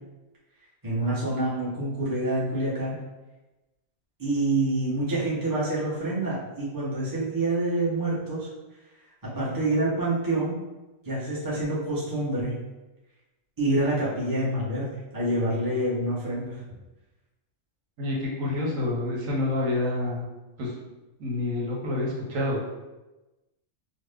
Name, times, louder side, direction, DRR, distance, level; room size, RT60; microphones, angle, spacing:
voice 1, 0.8-2.9 4.2-8.5 9.3-10.6 11.0-12.6 13.6-14.9 15.1-16.6, right 2 dB, 20° right, -8 dB, 0.7 m, -27 dB
voice 2, 18.0-20.3 20.6-20.7 21.2-22.7, left 2 dB, 85° right, -4 dB, 1.2 m, -28 dB
2.7 x 2.0 x 3.4 m, 1.1 s
omnidirectional pair, 1.3 m